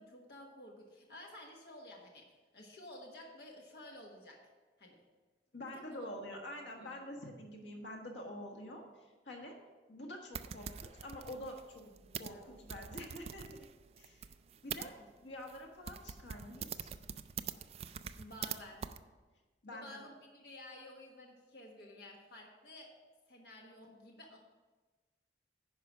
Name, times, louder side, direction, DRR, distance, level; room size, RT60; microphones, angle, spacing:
voice 1, 0.0-2.3 2.5-4.4 4.8-5.0 5.7-6.1 6.8-7.0 12.0-12.4 15.0-15.1 18.2-18.9 19.7-22.9 23.3-24.4, left 1 dB, 60° left, 0 dB, 1.3 m, -52 dB
voice 2, 5.5-9.6 9.9-11.9 12.1-13.5 14.0-14.3 14.6-16.9 19.6-20.0, left 1 dB, 90° left, 2 dB, 1.5 m, -47 dB
sound 1, 10.3-14.9 15.5-15.6 15.9-18.6 18.8-19.0, right 7 dB, 35° right, 0.3 m, -44 dB
10.5 x 5.0 x 6.1 m, 1.3 s
head